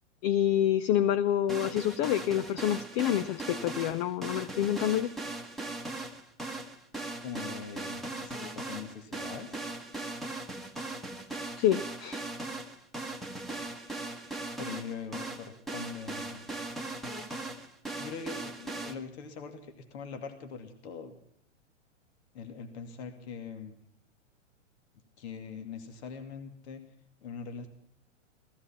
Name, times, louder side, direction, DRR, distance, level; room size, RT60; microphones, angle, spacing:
voice 1, 0.2-5.1 11.6-12.2, left 11 dB, 35° left, 17 dB, 0.6 m, -27 dB
sound 1, 1.5-18.9, right 2 dB, ahead, 1.3 m, -39 dB
voice 2, 7.2-9.7 14.6-16.4 18.0-21.2 22.3-23.8 25.2-26.8 27.2-27.7, left 6 dB, 60° left, 7 dB, 2.6 m, -42 dB
16.5 x 15.0 x 5.8 m, 0.66 s
hypercardioid pair, 125°, 37 cm